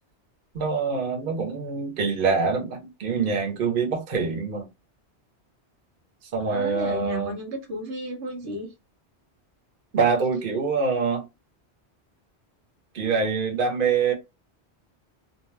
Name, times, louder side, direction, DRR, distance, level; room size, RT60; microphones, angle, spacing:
voice 1, 0.5-4.6 6.3-7.4 9.9-11.2 12.9-14.1, right 5 dB, 55° right, 1.0 m, -25 dB
voice 2, 6.5-8.7, equal, 85° right, 1.1 m, -33 dB
2.7 x 2.1 x 3.1 m
omnidirectional pair, 1.1 m